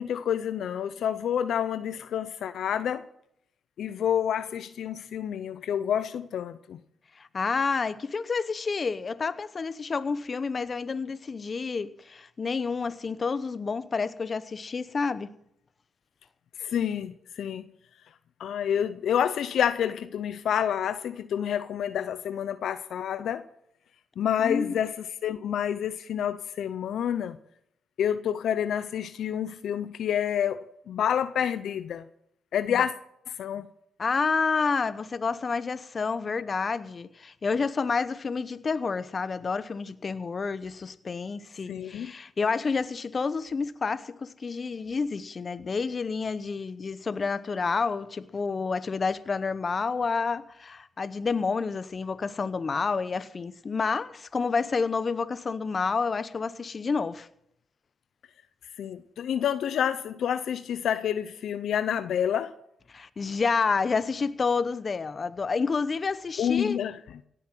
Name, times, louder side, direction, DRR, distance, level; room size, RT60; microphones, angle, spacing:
voice 1, 0.0-3.1 3.8-6.8 16.6-17.6 18.4-23.4 24.2-27.4 28.0-32.0 32.5-32.9 33.4-33.7 41.7-42.1 58.8-62.5 66.4-67.0, left 9 dB, 75° left, 0.6 m, -28 dB
voice 2, 7.2-15.3 24.4-24.7 32.7-32.9 34.0-57.3 62.9-66.8, left 4 dB, 45° left, 0.8 m, -29 dB
17.5 x 7.9 x 7.6 m
supercardioid pair, 60°, 0 cm